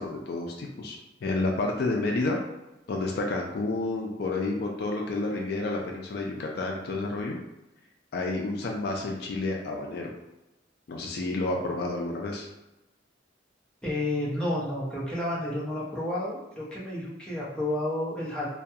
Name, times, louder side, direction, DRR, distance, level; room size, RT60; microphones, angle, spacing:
voice 1, 0.0-2.4 2.9-7.4 8.1-10.1 10.9-12.5, left 2 dB, 60° left, 0 dB, 0.4 m, -30 dB
voice 2, 13.8-18.5, left 1 dB, 5° left, -7 dB, 0.6 m, -31 dB
2.3 x 2.2 x 2.7 m, 0.97 s
head